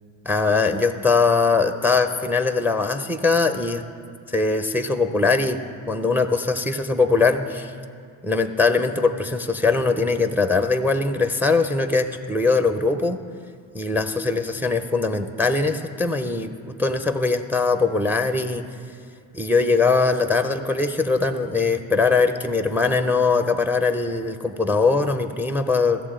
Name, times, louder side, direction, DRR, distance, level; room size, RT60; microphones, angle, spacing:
voice 1, 0.3-3.8 4.3-5.6 5.9-7.7 8.2-13.2 13.7-16.5 16.8-18.6 19.3-26.0, left 4 dB, 5° right, 9 dB, 0.5 m, -21 dB
14.5 x 7.3 x 3.7 m, 2.3 s
supercardioid pair, 70°, 46 cm